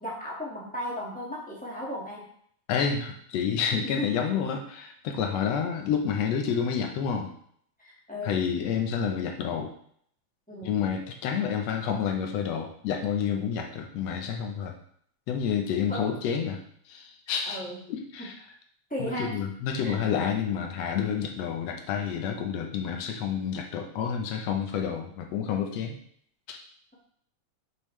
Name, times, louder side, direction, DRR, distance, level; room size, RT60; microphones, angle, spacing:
voice 1, 0.0-2.2 3.8-4.2 7.8-8.5 10.5-10.7 15.9-16.1 17.4-17.8 18.9-19.3 19.8-19.9, equal, 5° left, -6 dB, 0.8 m, -35 dB
voice 2, 2.7-7.3 8.2-9.7 10.6-14.7 15.3-16.6 16.9-17.6 17.9-18.3 19.0-26.0 26.5-26.6, left 7 dB, 70° left, 3 dB, 1.8 m, -29 dB
7.4 x 5.1 x 3.2 m, 0.64 s
omnidirectional pair, 3.4 m